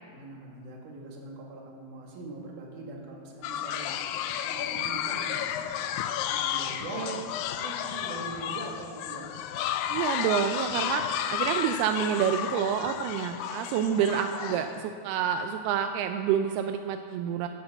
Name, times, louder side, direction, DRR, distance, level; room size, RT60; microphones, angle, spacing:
voice 1, 0.1-4.0 4.4-5.8 6.2-7.1 7.6-9.3, right 2 dB, 60° right, -1 dB, 3.2 m, -42 dB
sound 1, 3.4-14.8, left 10 dB, 85° left, 2.1 m, -32 dB
voice 2, 6.9-7.3 9.9-17.5, right 9 dB, 85° right, 7 dB, 2.5 m, -28 dB
11.5 x 10.5 x 7.9 m, 2.2 s
omnidirectional pair, 4.6 m